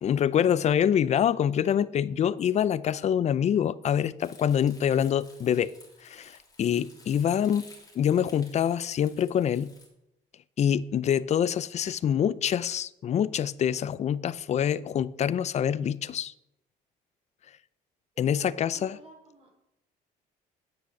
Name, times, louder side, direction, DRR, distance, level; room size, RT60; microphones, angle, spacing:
voice 1, 0.0-5.7 6.0-7.7 7.9-9.7 10.6-16.3 18.2-19.0, left 9 dB, 40° left, 0.5 m, -25 dB
Crumpling crinkling, 4.2-9.9, left 3 dB, 20° left, 3.4 m, -54 dB
voice 2, 18.1-19.5, right 3 dB, 35° right, 5.1 m, -52 dB
9.7 x 6.5 x 7.1 m
cardioid pair, 110°, 17 cm